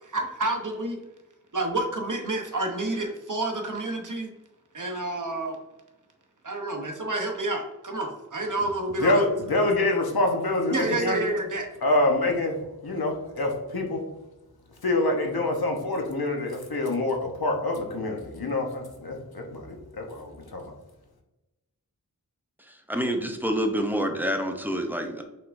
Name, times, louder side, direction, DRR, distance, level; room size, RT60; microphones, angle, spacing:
voice 1, 0.0-1.0 1.5-4.3 4.7-5.6 6.4-9.2 10.7-11.7, right 2 dB, 55° right, 2 dB, 0.9 m, -29 dB
voice 2, 9.0-11.2 11.8-14.0 14.8-20.7, left 2 dB, 85° left, 2 dB, 1.0 m, -26 dB
voice 3, 22.6-25.2, equal, 5° right, 4 dB, 0.7 m, -27 dB
5.6 x 3.6 x 2.6 m, 1.0 s
wide cardioid pair, 45°, 36 cm